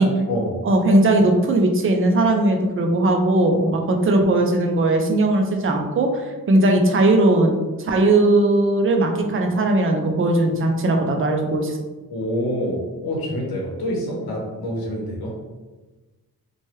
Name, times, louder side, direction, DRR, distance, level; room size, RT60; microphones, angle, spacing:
voice 1, 0.0-0.6 12.1-15.3, equal, 80° left, -2 dB, 0.9 m, -26 dB
voice 2, 0.6-7.5 7.8-11.8, right 2 dB, 35° right, 3 dB, 0.4 m, -18 dB
3.0 x 2.2 x 3.0 m, 1.2 s
wide cardioid pair, 135°, 36 cm